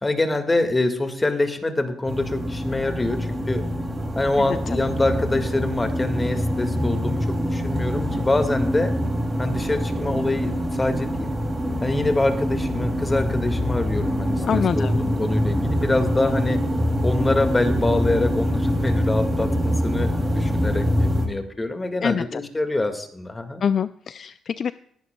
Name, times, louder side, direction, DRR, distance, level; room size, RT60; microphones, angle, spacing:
voice 1, 0.0-3.6 4.1-8.9 9.4-11.3 11.8-16.6 17.0-23.6, left 2 dB, 20° left, 7 dB, 1.8 m, -25 dB
sound 1, 2.1-21.3, equal, 15° right, 2.7 m, -24 dB
voice 2, 4.4-4.8 14.4-15.0 22.0-22.4 23.6-24.7, left 7 dB, 55° left, 14 dB, 0.3 m, -25 dB
19.0 x 11.5 x 2.3 m, 0.68 s
cardioid pair, 90°, 0 cm